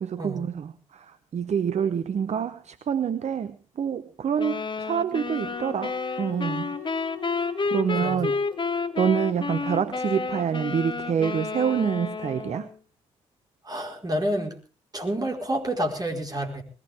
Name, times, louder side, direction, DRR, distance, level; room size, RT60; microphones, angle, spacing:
voice 1, 0.0-6.7 7.7-8.3 9.0-12.7, right 7 dB, 45° right, 13 dB, 0.9 m, -27 dB
sound 1, 4.4-12.8, left 4 dB, 30° left, 1.2 m, -30 dB
sound 2, 5.3-9.3, left 12 dB, 80° right, 6.0 m, -42 dB
voice 2, 7.9-8.3 13.6-14.5 14.9-16.6, right 1 dB, 25° right, 2 dB, 4.5 m, -29 dB
20.5 x 16.0 x 3.5 m, 0.35 s
hypercardioid pair, 40°, 15 cm